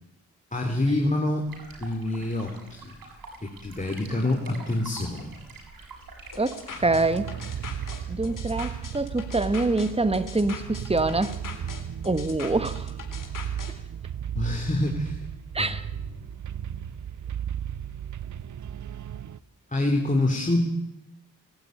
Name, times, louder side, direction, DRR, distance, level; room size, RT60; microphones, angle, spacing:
voice 1, 0.5-1.5 1.8-2.9 3.4-5.4 14.3-15.2 15.6-15.7 19.7-20.6, left 1 dB, 20° left, 2 dB, 3.6 m, -26 dB
sound 1, 1.4-8.1, right 3 dB, 70° right, 7.5 m, -46 dB
sound 2, 6.3-13.7, left 5 dB, 60° left, 4.1 m, -42 dB
voice 2, 6.4-7.3 8.1-11.4 12.0-12.9 15.5-15.9, right 2 dB, 15° right, 11 dB, 1.8 m, -25 dB
sound 3, 6.8-19.4, right 9 dB, 55° right, 0.8 m, -35 dB
28.5 x 12.5 x 9.5 m, 0.86 s
cardioid pair, 60°, 36 cm